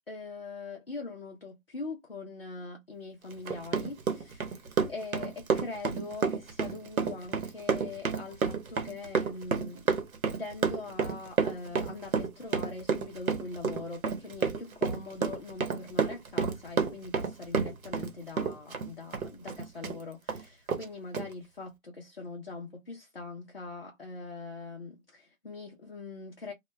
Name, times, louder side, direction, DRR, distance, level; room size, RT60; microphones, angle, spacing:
voice 1, 0.1-9.9 10.4-26.5, left 3 dB, 45° left, 0.5 m, -42 dB
Run, 3.3-18.1 18.4-20.0 20.3-20.4 20.7-20.8 21.1-21.3, right 5 dB, 90° right, 0.8 m, -30 dB
2.1 x 2.0 x 3.1 m
hypercardioid pair, 180°, 41 cm